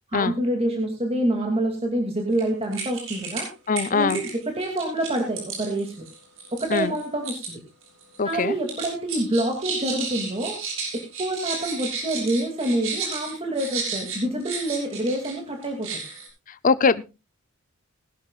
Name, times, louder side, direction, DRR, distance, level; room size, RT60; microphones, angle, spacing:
voice 1, 0.1-3.5 3.9-6.0 6.5-7.6 8.2-10.6 10.9-15.9, right 1 dB, 30° right, 2 dB, 2.6 m, -27 dB
sound 1, 2.3-2.4 2.7-3.5 3.8-7.5 7.8-8.3 8.7-15.3 15.6-16.3, right 5 dB, 65° right, 6.8 m, -33 dB
voice 2, 3.7-4.2 6.7-6.9 8.2-8.5 16.6-17.0, left 4 dB, 40° left, 15 dB, 0.6 m, -21 dB
20.5 x 12.0 x 2.4 m, 0.27 s
head